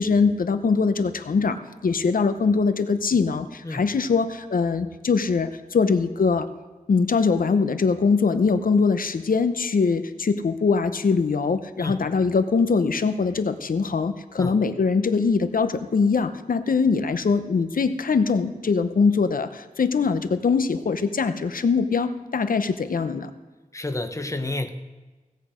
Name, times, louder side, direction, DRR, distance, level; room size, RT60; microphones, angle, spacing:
voice 1, 0.0-6.5 6.9-23.3, left 5 dB, 90° left, 11 dB, 0.7 m, -22 dB
voice 2, 23.7-24.7, left 2 dB, 20° left, 7 dB, 1.0 m, -30 dB
17.0 x 8.3 x 5.0 m, 1.2 s
wide cardioid pair, 75°, 14 cm